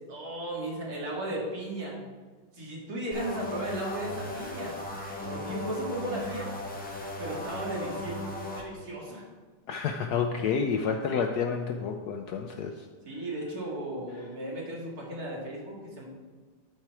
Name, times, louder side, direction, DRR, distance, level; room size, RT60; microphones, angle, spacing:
voice 1, 0.1-2.0 2.5-4.7 5.2-6.5 7.2-8.2 8.5-9.3 13.0-16.0, right 1 dB, 50° right, -3 dB, 2.4 m, -35 dB
sound 1, 3.1-8.6, left 1 dB, 5° left, 0.9 m, -37 dB
voice 2, 9.7-12.9, left 6 dB, 75° left, 5 dB, 0.9 m, -29 dB
11.5 x 4.4 x 4.8 m, 1.4 s
omnidirectional pair, 2.2 m